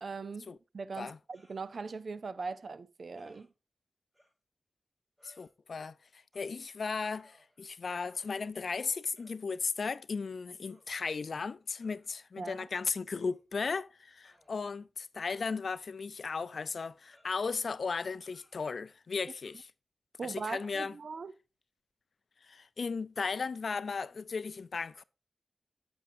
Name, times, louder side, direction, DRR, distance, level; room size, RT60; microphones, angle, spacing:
voice 1, 0.0-3.5 12.4-12.7 20.2-21.3, right 4 dB, 65° right, 0.5 m, -40 dB
sound 1, 1.3-1.6 3.1-3.5 4.1-4.3 5.2-5.5 6.3-6.6 7.1-7.7 8.1-8.5 9.2-9.4 10.7-10.9 11.8-12.1 13.2-13.4 14.2-14.8 15.3-15.9 17.1-17.4 18.2-18.6 19.4-19.6, equal, 15° right, 4.9 m, -66 dB
voice 2, 5.2-19.7 20.2-20.9 22.4-25.0, left 5 dB, 70° left, 0.4 m, -36 dB
9.0 x 6.9 x 2.6 m
cardioid pair, 45°, 0 cm